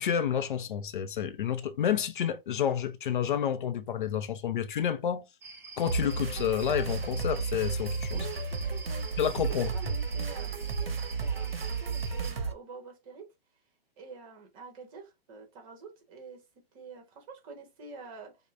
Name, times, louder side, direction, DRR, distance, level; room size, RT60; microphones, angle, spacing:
voice 1, 0.0-5.2 5.8-8.3 9.2-9.7, left 9 dB, 55° left, 0.6 m, -29 dB
sound 1, 5.4-12.3, right 3 dB, 10° right, 0.5 m, -47 dB
sound 2, 5.9-12.5, right 5 dB, 70° right, 0.8 m, -33 dB
voice 2, 8.1-13.3 14.0-16.4 16.7-18.4, right 4 dB, 35° right, 1.3 m, -47 dB
5.2 x 2.2 x 2.5 m
figure-of-eight pair, 120°, 31 cm